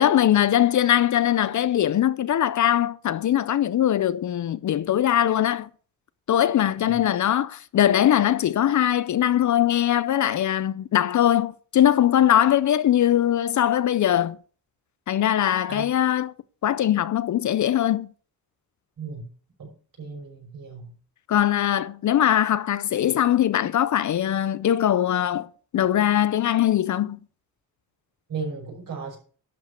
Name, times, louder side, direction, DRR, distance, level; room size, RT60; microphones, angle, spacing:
voice 1, 0.0-5.7 6.3-14.4 15.1-16.3 16.6-18.1 21.3-25.5 25.7-27.2, left 11 dB, 50° left, 0.5 m, -21 dB
voice 2, 20.0-20.9 28.3-29.2, right 5 dB, 60° right, 5.5 m, -35 dB
11.5 x 5.3 x 6.6 m
wide cardioid pair, 135°, 37 cm